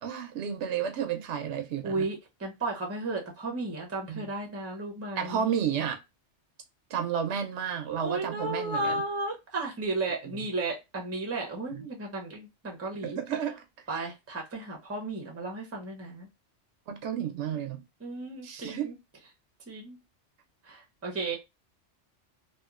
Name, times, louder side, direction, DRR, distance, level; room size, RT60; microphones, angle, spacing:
voice 1, 0.0-2.1 4.1-4.3 5.2-6.0 6.9-9.0 10.2-10.5 11.7-11.8 13.0-13.6 16.9-17.8 18.4-18.9, right 8 dB, 75° right, 0.8 m, -32 dB
voice 2, 1.8-5.5 8.0-13.2 13.9-16.3 18.0-18.9 19.7-20.0 20.6-21.4, right 2 dB, 15° right, 0.6 m, -34 dB
2.8 x 2.4 x 2.4 m
omnidirectional pair, 1.2 m